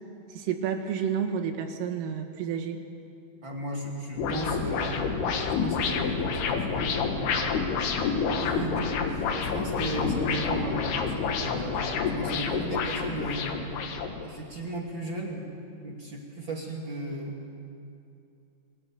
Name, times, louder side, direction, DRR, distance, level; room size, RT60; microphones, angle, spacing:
voice 1, 0.4-2.8, right 7 dB, 85° right, 3 dB, 4.3 m, -30 dB
voice 2, 3.4-5.3 5.6-7.6 8.1-13.6 14.2-15.5 15.7-17.4, right 1 dB, 40° right, -1 dB, 1.8 m, -36 dB
sound 1, 4.2-14.2, left 5 dB, 65° left, 3.3 m, -28 dB
27.5 x 23.5 x 7.1 m, 2.6 s
omnidirectional pair, 5.7 m